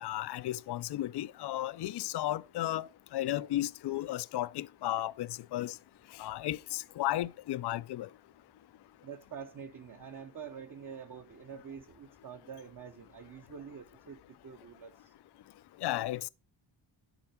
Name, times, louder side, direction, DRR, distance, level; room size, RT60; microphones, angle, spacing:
voice 1, 0.0-5.8 6.2-8.1 15.8-16.3, left 14 dB, 60° left, 0.5 m, -34 dB
voice 2, 9.0-15.1, right 7 dB, 40° right, 1.0 m, -46 dB
11.0 x 4.6 x 4.3 m
cardioid pair, 85°, 46 cm